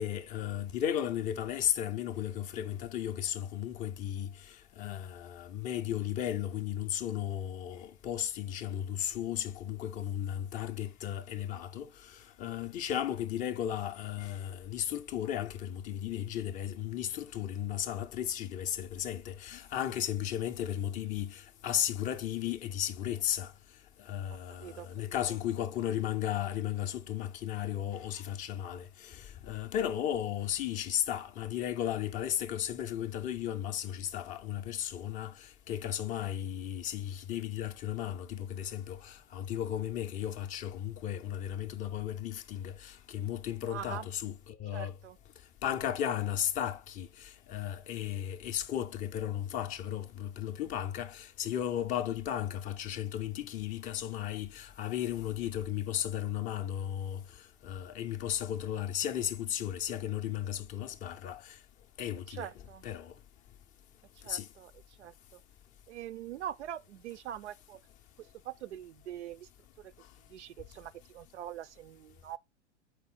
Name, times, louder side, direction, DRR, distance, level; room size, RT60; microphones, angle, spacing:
voice 1, 0.0-23.5 24.0-45.0 45.6-61.6 62.0-62.5 62.8-63.1 64.3-64.5, left 10 dB, 25° left, 0.4 m, -35 dB
voice 2, 24.3-25.4 43.6-44.1 44.7-45.2 62.3-62.8 64.2-65.4 65.9-67.8 68.2-69.5 69.8-69.9 70.3-72.4, right 11 dB, 75° right, 0.5 m, -44 dB
4.6 x 4.1 x 5.6 m
hypercardioid pair, 100°, 35 cm